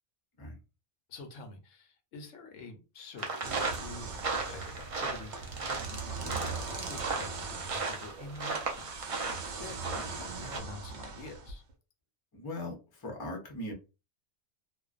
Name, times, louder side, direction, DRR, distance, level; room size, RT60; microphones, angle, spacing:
voice 1, 1.1-11.6, left 3 dB, 85° left, 5 dB, 1.0 m, -48 dB
sound 1, 3.2-10.6, right 4 dB, 55° right, 0.3 m, -36 dB
sound 2, 3.4-11.7, right 4 dB, 75° right, 0.9 m, -41 dB
voice 2, 12.3-13.7, left 1 dB, 25° left, 1 dB, 0.5 m, -39 dB
2.5 x 2.1 x 2.4 m, 0.29 s
omnidirectional pair, 1.3 m